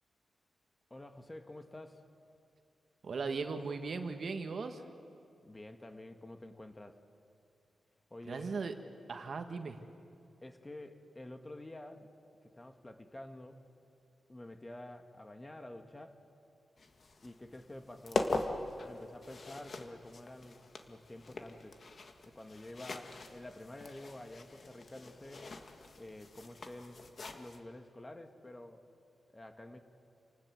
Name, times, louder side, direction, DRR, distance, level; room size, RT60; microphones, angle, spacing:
voice 1, 0.9-2.0 5.4-7.0 8.1-8.5 10.4-12.1 12.5-13.6 14.3-16.2 17.2-20.6 20.9-21.8 22.3-25.5 26.0-27.0 27.3-28.8 29.3-29.8, left 1 dB, 20° left, 6 dB, 1.9 m, -49 dB
voice 2, 3.0-4.8 8.3-8.7 9.1-9.8, right 4 dB, 60° right, 7 dB, 1.7 m, -38 dB
sound 1, 16.8-27.6, left 3 dB, 55° left, 1.9 m, -42 dB
28.5 x 19.0 x 7.8 m, 2.6 s
cardioid pair, 70°, 0 cm